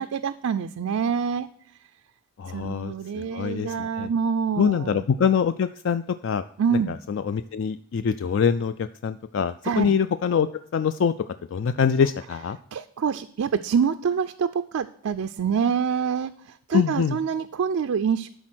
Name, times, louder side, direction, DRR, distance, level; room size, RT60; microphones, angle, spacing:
voice 1, 0.0-1.5 2.5-5.1 6.6-7.0 9.6-9.9 12.7-18.3, right 6 dB, 80° right, 10 dB, 0.4 m, -26 dB
voice 2, 2.4-4.1 4.6-6.4 7.1-8.7 9.0-11.1 11.5-12.6 16.7-17.2, left 7 dB, 60° left, 11 dB, 0.3 m, -24 dB
12.0 x 4.1 x 6.1 m, 0.64 s
head